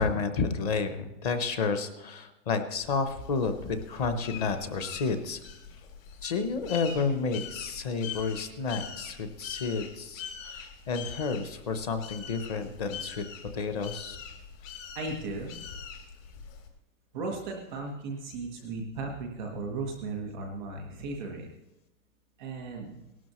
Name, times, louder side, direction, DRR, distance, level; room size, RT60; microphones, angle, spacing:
voice 1, 0.0-5.4 6.2-13.2 13.5-14.2, left 4 dB, 25° left, 9 dB, 0.7 m, -31 dB
sound 1, 2.7-16.7, left 7 dB, 50° left, 2.8 m, -43 dB
voice 2, 14.9-15.5 17.1-21.5 22.4-23.0, right 3 dB, ahead, 1 dB, 0.4 m, -36 dB
18.0 x 12.5 x 3.0 m, 0.99 s
hypercardioid pair, 160°, 48 cm